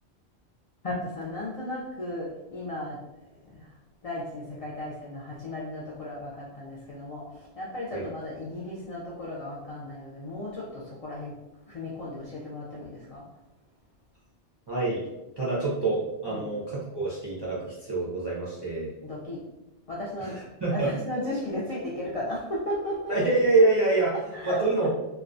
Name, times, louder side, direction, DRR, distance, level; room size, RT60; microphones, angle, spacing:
voice 1, 0.8-3.0 3.4-3.7 4.0-11.3 11.7-13.2 16.2-16.5 19.0-19.4 19.9-20.4 20.7-23.2 24.1-24.9, left 1 dB, 65° left, -5 dB, 0.3 m, -35 dB
voice 2, 14.7-15.0 15.4-18.9 20.3-20.9 23.1-24.2 24.4-24.9, right 2 dB, 40° right, -7 dB, 0.4 m, -26 dB
2.3 x 2.2 x 2.5 m, 0.99 s
omnidirectional pair, 1.2 m